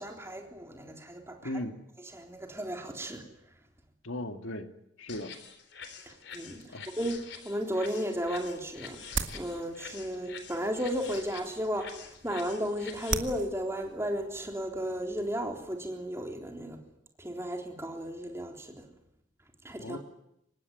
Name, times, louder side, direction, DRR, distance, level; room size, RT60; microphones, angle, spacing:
voice 1, 0.0-1.5 2.1-3.2 6.1-9.0 9.3-16.8 17.2-18.9 19.6-20.0, equal, 15° right, 3 dB, 3.6 m, -34 dB
voice 2, 1.4-1.8 4.0-4.7 5.0-5.4 6.7-6.9 19.8-20.0, left 1 dB, 90° left, 7 dB, 2.3 m, -37 dB
sound 1, 5.1-13.1, left 6 dB, 60° left, 3.7 m, -47 dB
sound 2, 8.1-15.8, right 5 dB, 80° right, 2.2 m, -41 dB
25.0 x 20.5 x 9.4 m, 0.79 s
head